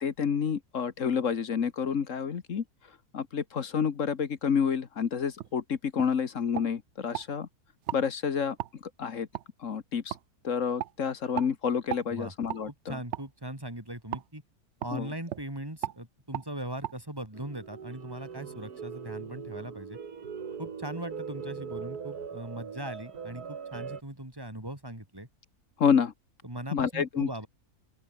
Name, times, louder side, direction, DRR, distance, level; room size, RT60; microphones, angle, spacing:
voice 1, 0.0-2.6 3.1-7.5 7.9-8.6 8.8-9.3 9.6-10.2 10.4-13.0 14.9-15.1 25.8-26.1 26.7-27.3, left 6 dB, 55° left, 1.5 m, -29 dB
sound 1, 5.4-5.5 6.0-6.1 6.5-7.3 7.8-8.0 8.6-8.7 9.3-9.5 10.1-10.2 10.8-10.9 11.4-11.5 11.9-12.1 12.5-12.6 13.1-13.3 14.1-14.3 14.8-14.9 15.3-15.4 15.8-16.0 16.3-16.5 16.8-16.9, right 12 dB, 60° right, 0.8 m, -35 dB
voice 2, 12.7-14.4 14.8-20.0 20.6-25.3 26.4-27.5, right 1 dB, 15° right, 4.6 m, -39 dB
sound 2, 17.3-24.0, right 6 dB, 75° right, 2.3 m, -40 dB
open air
omnidirectional pair, 1.6 m